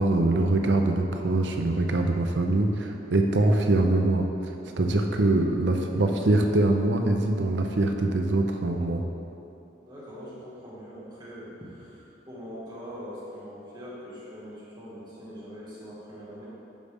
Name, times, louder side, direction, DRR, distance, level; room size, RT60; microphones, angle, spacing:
voice 1, 0.0-4.5 4.8-9.0, right 2 dB, 75° right, 4 dB, 0.6 m, -23 dB
voice 2, 4.6-5.0 9.8-16.4, equal, 25° right, -8 dB, 1.7 m, -42 dB
8.7 x 5.3 x 3.6 m, 2.7 s
head